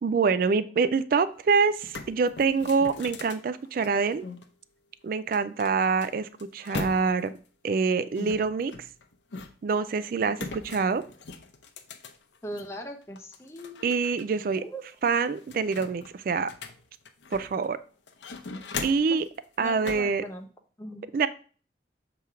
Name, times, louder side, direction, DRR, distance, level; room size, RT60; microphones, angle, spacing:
voice 1, 0.0-4.3 5.0-7.3 7.6-8.7 9.6-11.1 13.8-14.6 15.0-16.5 17.3-17.8 18.8-19.2 19.6-20.2 21.1-21.3, right 5 dB, 50° right, 14 dB, 0.3 m, -25 dB
sound 1, 1.3-1.4 1.7-4.4 5.3-7.4 8.2-9.8 10.3-12.8 13.2-14.2 14.6-14.7 15.0-17.7 18.1-19.2 19.8-20.2, left 4 dB, 85° left, 0.7 m, -40 dB
voice 2, 12.4-13.8 14.6-14.8 19.1-19.2 19.6-20.5 20.8-21.1, right 1 dB, 15° left, 3 dB, 0.5 m, -39 dB
6.9 x 3.0 x 4.8 m, 0.40 s
head